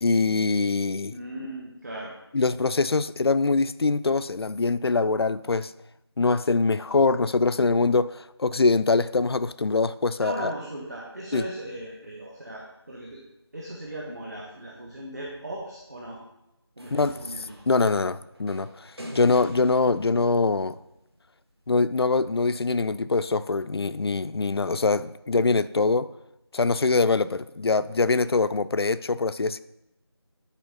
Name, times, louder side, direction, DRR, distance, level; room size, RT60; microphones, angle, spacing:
voice 1, 0.0-1.2 2.3-5.7 6.2-10.5 11.3-11.4 16.9-17.1 17.7-20.8 21.7-26.1 26.5-29.6, left 3 dB, 65° left, 0.4 m, -23 dB
voice 2, 1.1-2.1 10.2-13.2 13.5-16.2 16.8-17.6, right 1 dB, 40° right, 1.3 m, -37 dB
sound 1, 16.8-21.1 22.3-22.4, equal, 65° right, 2.2 m, -44 dB
10.5 x 4.3 x 5.2 m
figure-of-eight pair, 170°, 14 cm